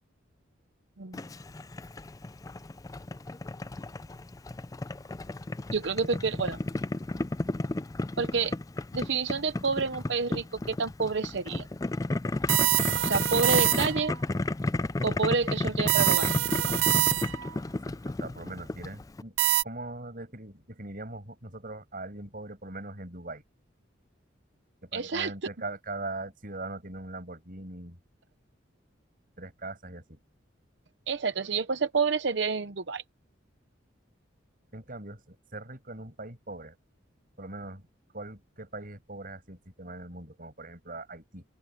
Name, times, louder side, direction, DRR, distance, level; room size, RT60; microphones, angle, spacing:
Boiling, 1.1-19.2, left 2 dB, 20° left, 0.4 m, -33 dB
voice 1, 5.7-6.6 8.2-8.6 8.9-11.7 13.0-14.1 15.0-16.3 24.9-25.3 31.1-33.0, right 4 dB, 65° right, 0.8 m, -28 dB
sound 1, 12.5-14.2 15.9-17.5 19.4-19.6, right 16 dB, 80° right, 0.4 m, -25 dB
voice 2, 17.9-19.4 19.6-23.4 24.8-28.0 29.4-30.2 34.7-36.8 37.4-37.9 38.1-41.5, right 2 dB, 45° right, 7.1 m, -41 dB
open air
head